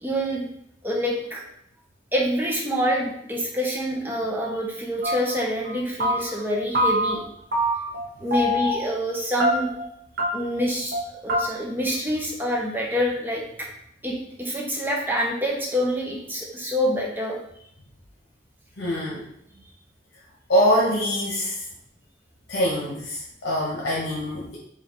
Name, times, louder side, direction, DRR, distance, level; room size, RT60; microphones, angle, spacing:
voice 1, 0.0-0.5 0.8-1.4 2.1-7.2 8.2-9.7 10.3-13.7 14.0-17.4, equal, 10° right, -1 dB, 0.6 m, -26 dB
sound 1, 5.0-5.4 5.6-6.5 6.7-7.3 7.5-8.1 8.3-8.8 9.4-9.9 10.2-10.3 10.6-10.7 10.9-11.0 11.3-11.4, equal, 55° right, 0.7 m, -24 dB
voice 2, 18.8-19.3 20.5-21.6 22.5-24.6, equal, 90° left, -5 dB, 0.8 m, -24 dB
4.9 x 2.4 x 2.9 m, 0.73 s
head